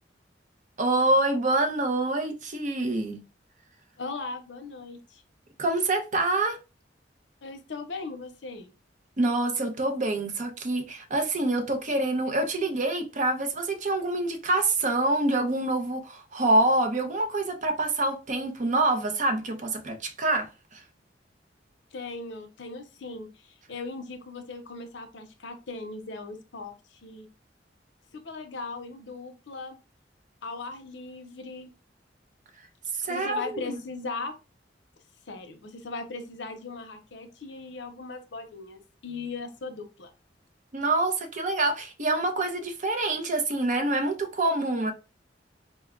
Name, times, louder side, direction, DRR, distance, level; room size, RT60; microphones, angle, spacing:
voice 1, 0.8-3.2 5.6-6.6 9.2-20.8 32.9-33.7 40.7-44.9, right 2 dB, 45° right, 0.7 m, -26 dB
voice 2, 4.0-5.2 7.4-8.7 21.9-27.3 28.1-29.8 30.4-31.7 33.1-34.3 35.3-40.1, left 3 dB, 70° left, 0.7 m, -38 dB
4.1 x 2.3 x 3.5 m
head